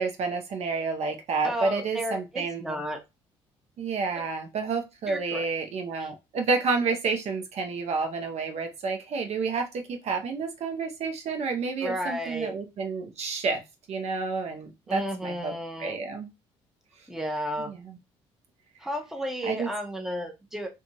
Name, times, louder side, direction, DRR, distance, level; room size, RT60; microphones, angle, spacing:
voice 1, 0.0-2.8 3.8-13.6 13.9-15.5 15.8-16.3 17.6-18.0 19.5-19.7, right 4 dB, 55° right, 4 dB, 0.7 m, -30 dB
voice 2, 1.4-3.0 4.1-4.2 5.1-5.5 6.0-6.1 11.8-12.5 14.9-16.0 17.1-17.7 18.8-20.7, equal, 5° right, 4 dB, 0.8 m, -33 dB
2.5 x 2.4 x 2.8 m, 0.23 s
hypercardioid pair, 60°, 13 cm